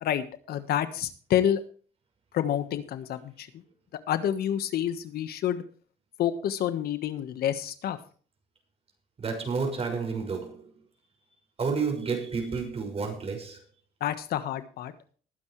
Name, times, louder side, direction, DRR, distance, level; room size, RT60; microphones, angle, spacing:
voice 1, 0.0-1.6 2.3-3.6 4.1-5.6 6.2-8.0 14.0-14.9, left 10 dB, 65° left, 1.4 m, -28 dB
voice 2, 9.2-10.7 11.6-13.6, right 5 dB, 35° right, 6.0 m, -30 dB
20.5 x 9.7 x 3.2 m
cardioid pair, 110°, 17 cm